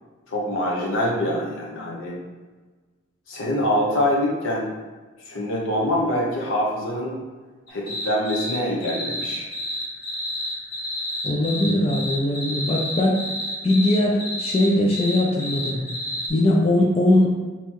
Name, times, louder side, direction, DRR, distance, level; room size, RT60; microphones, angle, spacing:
voice 1, 0.3-2.2 3.3-4.7 5.3-7.2 7.7-9.5, left 1 dB, 75° left, -3 dB, 1.1 m, -24 dB
sound 1, 7.7-8.6 8.8-16.3, left 1 dB, 55° left, 1.4 m, -30 dB
voice 2, 11.2-13.2 13.6-15.8 16.3-17.3, left 1 dB, 30° left, -2 dB, 0.5 m, -20 dB
5.5 x 3.0 x 3.1 m, 1.3 s
head